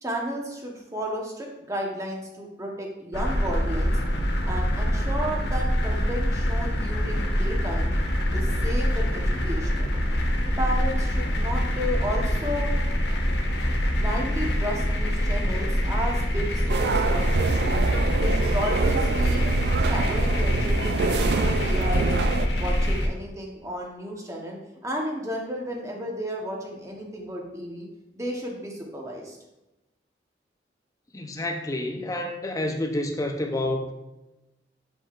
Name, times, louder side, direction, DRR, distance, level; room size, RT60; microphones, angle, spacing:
voice 1, 0.0-3.9 4.5-7.9 8.3-9.9 10.6-12.7 13.8-17.8 18.2-19.5 19.8-22.2 22.6-27.9 28.2-29.4, equal, 20° right, 0 dB, 1.0 m, -33 dB
sound 1, 3.1-23.1, equal, 80° left, 0.9 m, -25 dB
sound 2, 16.7-22.5, right 4 dB, 65° right, 0.3 m, -26 dB
voice 2, 31.1-33.9, left 1 dB, 20° left, 3 dB, 0.6 m, -29 dB
7.4 x 5.2 x 2.4 m, 0.99 s
head